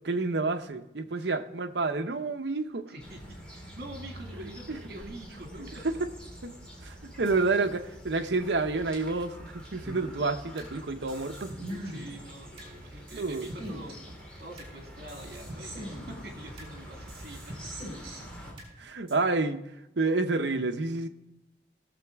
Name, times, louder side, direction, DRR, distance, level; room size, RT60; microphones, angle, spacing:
voice 1, 0.0-2.9 6.4-6.5 6.8-11.5 13.1-13.5 18.8-19.6 20.0-21.1, right 3 dB, 80° right, 0.8 m, -29 dB
voice 2, 2.9-3.2 3.5-5.8 7.0-7.1 11.8-17.5, right 1 dB, 60° right, 2.1 m, -45 dB
sound 1, 3.0-18.5, equal, 5° left, 2.4 m, -46 dB
sound 2, 9.8-10.7 11.1-12.7 13.1-14.7 15.1-16.7 17.1-18.7 19.1-19.2, equal, 30° right, 3.4 m, -42 dB
18.0 x 7.1 x 3.5 m
head